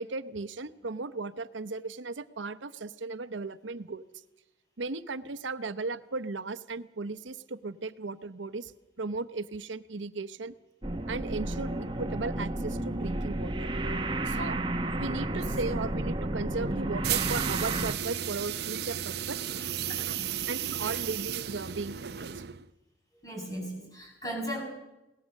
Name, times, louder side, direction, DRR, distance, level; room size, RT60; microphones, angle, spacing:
voice 1, 0.0-4.0 4.8-8.7 9.0-10.5 11.1-13.7 14.3-14.6 15.0-19.4 20.5-22.4, right 3 dB, 90° right, 13 dB, 0.8 m, -36 dB
sound 1, 10.8-17.9, right 1 dB, 25° right, 1.1 m, -32 dB
sound 2, 17.0-22.7, right 10 dB, 60° right, 0.6 m, -33 dB
voice 2, 23.2-24.6, equal, 20° left, 0 dB, 6.1 m, -37 dB
22.0 x 18.0 x 6.6 m, 0.99 s
head